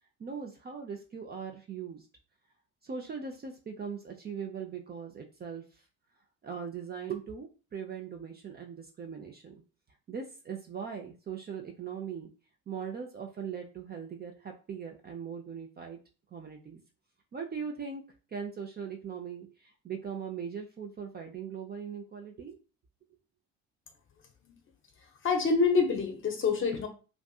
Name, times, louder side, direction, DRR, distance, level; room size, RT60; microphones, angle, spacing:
voice 1, 0.2-2.1 2.8-5.6 6.4-9.5 10.1-12.3 12.7-16.0 16.3-16.8 17.3-18.0 18.3-22.6, right 6 dB, 25° right, 2 dB, 0.4 m, -40 dB
voice 2, 25.2-26.9, left 4 dB, 30° left, 5 dB, 0.7 m, -26 dB
2.5 x 2.5 x 2.3 m, 0.35 s
hypercardioid pair, 55°, 39 cm